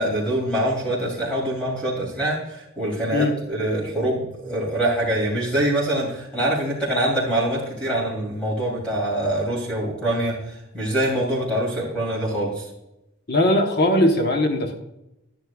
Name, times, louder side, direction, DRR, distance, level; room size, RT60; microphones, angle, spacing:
voice 1, 0.0-12.7, right 1 dB, 5° left, -5 dB, 2.9 m, -24 dB
voice 2, 13.3-14.7, left 1 dB, 50° left, 4 dB, 1.0 m, -19 dB
11.0 x 9.5 x 2.3 m, 0.89 s
head